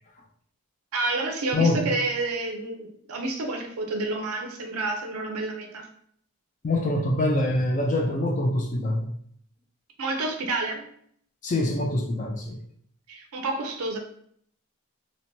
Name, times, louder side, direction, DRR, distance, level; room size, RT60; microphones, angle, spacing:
voice 1, 0.9-5.9 10.0-10.9 13.1-14.0, right 2 dB, 80° right, 3 dB, 0.5 m, -29 dB
voice 2, 1.5-1.9 6.6-9.1 11.4-12.6, left 1 dB, 35° left, 1 dB, 0.3 m, -24 dB
3.0 x 2.1 x 2.6 m, 0.64 s
head